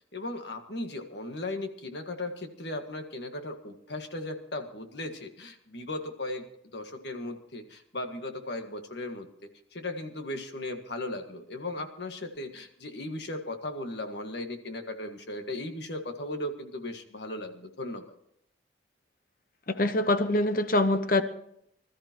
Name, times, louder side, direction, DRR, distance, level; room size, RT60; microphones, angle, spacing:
voice 1, 0.1-6.5 6.7-9.3 9.7-18.1, left 2 dB, 65° left, 6 dB, 1.7 m, -37 dB
voice 2, 19.7-21.2, left 2 dB, 45° left, 10 dB, 1.0 m, -24 dB
25.5 x 13.5 x 3.0 m, 0.73 s
head